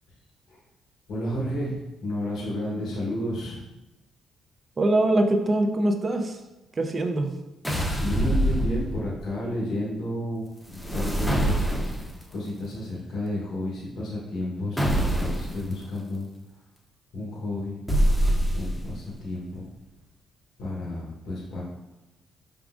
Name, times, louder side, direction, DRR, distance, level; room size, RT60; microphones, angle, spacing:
voice 1, 1.1-3.6 7.8-11.6 12.3-16.3 17.1-17.8 18.5-19.7 20.6-21.6, left 1 dB, 70° left, -5 dB, 1.0 m, -31 dB
voice 2, 4.8-6.4 6.8-7.3, right 1 dB, 35° right, 5 dB, 0.5 m, -23 dB
sound 1, 7.6-9.3 10.7-12.2 14.8-15.6 17.9-19.0, equal, 5° left, 0.7 m, -24 dB
4.8 x 3.6 x 2.4 m, 1.0 s
cardioid pair, 90°, 0 cm